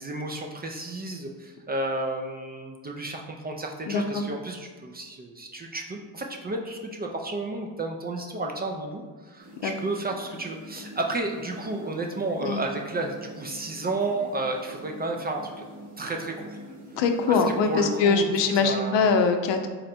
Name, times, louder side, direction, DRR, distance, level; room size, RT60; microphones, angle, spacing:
voice 1, 0.0-15.6 16.0-16.6 17.3-17.4 17.7-19.1, right 2 dB, 25° right, 2 dB, 0.3 m, -32 dB
voice 2, 3.9-4.3 9.6-9.7 12.4-12.6 17.0-19.7, left 4 dB, 75° left, 5 dB, 0.6 m, -23 dB
sound 1, 9.4-18.1, right 1 dB, 65° right, 1.3 m, -45 dB
3.8 x 2.1 x 4.2 m, 1.5 s
cardioid pair, 85°, 44 cm